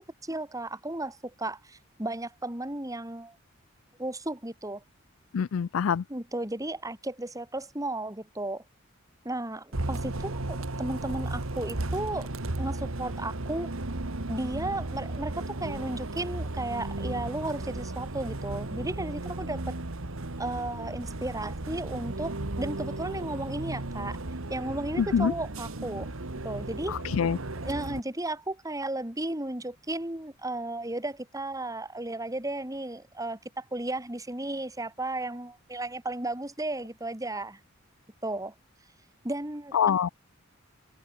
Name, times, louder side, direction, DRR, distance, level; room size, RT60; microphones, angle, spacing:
voice 1, 0.0-3.4 4.0-4.8 6.1-8.6 9.2-12.3 12.6-13.7 14.3-19.8 20.4-24.2 24.5-26.1 26.4-27.0 27.6-37.6 38.2-38.5 39.2-40.0, right 2 dB, 15° right, 2.9 m, -34 dB
voice 2, 5.3-6.0 25.0-25.3 26.9-27.4 39.7-40.1, left 7 dB, 80° left, 0.4 m, -25 dB
Bus, 9.7-28.0, right 2 dB, 80° right, 1.7 m, -35 dB
head